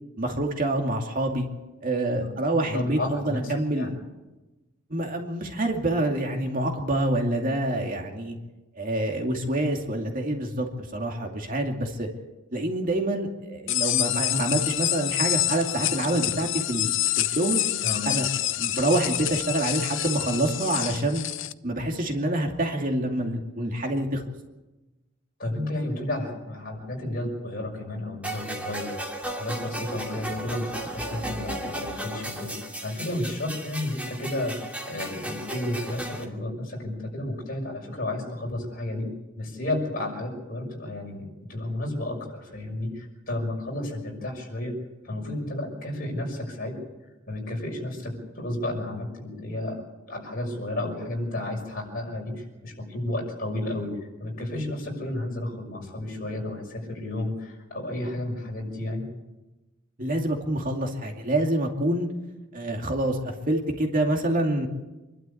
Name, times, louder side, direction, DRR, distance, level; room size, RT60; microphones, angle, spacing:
voice 1, 0.2-1.5 1.8-4.0 4.9-8.4 8.8-12.1 12.5-17.6 18.1-21.3 21.6-24.2 60.0-62.1 62.5-64.7, right 1 dB, 40° right, 2 dB, 2.4 m, -27 dB
voice 2, 2.7-3.9 17.8-18.1 25.4-39.1 39.4-44.7 45.0-46.8 47.3-49.8 50.1-53.9 54.2-59.1, left 1 dB, 45° left, 0 dB, 6.1 m, -32 dB
sound 1, 13.7-21.5, left 14 dB, 65° left, 0.6 m, -27 dB
sound 2, 28.2-36.2, right 1 dB, 5° right, 2.7 m, -35 dB
26.0 x 12.5 x 8.5 m, 1.1 s
head